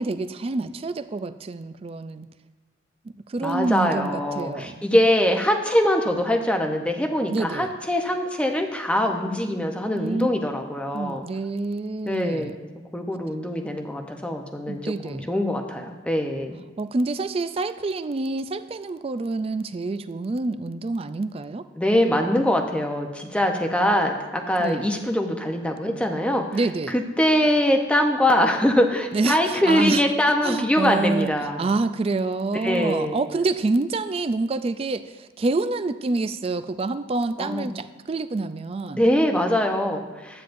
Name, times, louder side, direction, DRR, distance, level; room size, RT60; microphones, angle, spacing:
voice 1, 0.0-2.3 3.3-4.8 7.3-7.7 9.9-10.3 10.9-12.6 14.7-15.3 16.8-21.7 24.6-24.9 26.5-27.0 29.1-30.0 30.4-31.3 31.6-39.1, right 3 dB, 30° right, 12 dB, 0.3 m, -27 dB
voice 2, 3.4-11.2 12.0-12.5 12.9-16.6 21.8-26.6 26.9-31.6 32.6-33.2 37.4-37.7 38.9-40.4, left 1 dB, 5° left, 3 dB, 0.7 m, -23 dB
12.5 x 9.1 x 2.6 m, 1.3 s
head